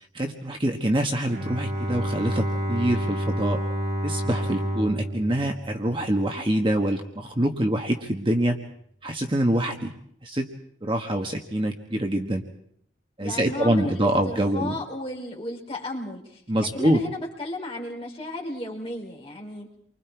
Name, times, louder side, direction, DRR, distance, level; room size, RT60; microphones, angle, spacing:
voice 1, 0.1-3.6 4.0-8.6 9.0-9.9 10.2-10.5 10.8-12.4 13.2-14.8 16.5-17.0, right 1 dB, 25° right, 3 dB, 1.5 m, -25 dB
Bowed string instrument, 1.2-6.5, right 1 dB, 55° right, 3.5 m, -29 dB
voice 2, 13.2-19.7, left 1 dB, 30° left, -1 dB, 4.4 m, -34 dB
29.5 x 24.5 x 4.7 m, 0.67 s
head